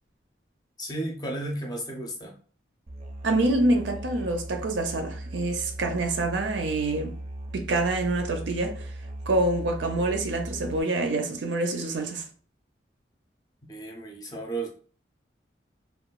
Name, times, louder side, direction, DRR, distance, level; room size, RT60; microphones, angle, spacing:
voice 1, 0.8-2.3 13.7-14.7, right 2 dB, 20° left, 0.5 m, -33 dB
Musical instrument, 2.9-10.8, right 1 dB, 40° right, 0.4 m, -38 dB
voice 2, 3.2-7.1 7.5-8.9 9.3-12.2, right 2 dB, 85° right, 0.5 m, -26 dB
3.0 x 2.2 x 2.3 m
head